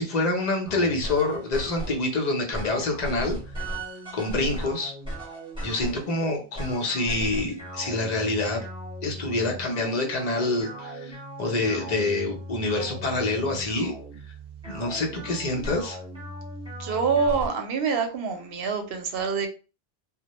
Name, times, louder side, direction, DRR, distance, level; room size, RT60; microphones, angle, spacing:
voice 1, 0.0-3.4 4.1-4.9 5.6-8.7 9.0-14.0 14.7-16.0, left 2 dB, 45° left, 1 dB, 0.7 m, -27 dB
sound 1, 0.6-2.1 2.5-6.1 6.5-17.5, right 1 dB, 5° right, 0.9 m, -37 dB
voice 2, 16.8-19.5, right 5 dB, 70° right, 6 dB, 0.8 m, -26 dB
2.1 x 2.1 x 2.8 m, 0.33 s
omnidirectional pair, 1.1 m